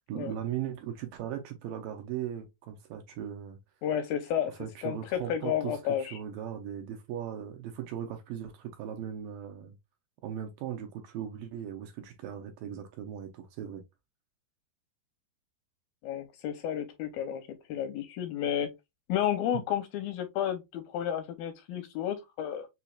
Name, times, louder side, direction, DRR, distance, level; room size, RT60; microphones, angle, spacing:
voice 1, 0.1-3.6 4.4-9.8 10.2-13.8, right 10 dB, 75° right, 2.2 m, -38 dB
voice 2, 3.8-4.5 4.8-6.2 16.0-18.7 19.1-22.7, left 10 dB, 85° left, 2.2 m, -32 dB
7.0 x 2.8 x 2.3 m
omnidirectional pair, 4.6 m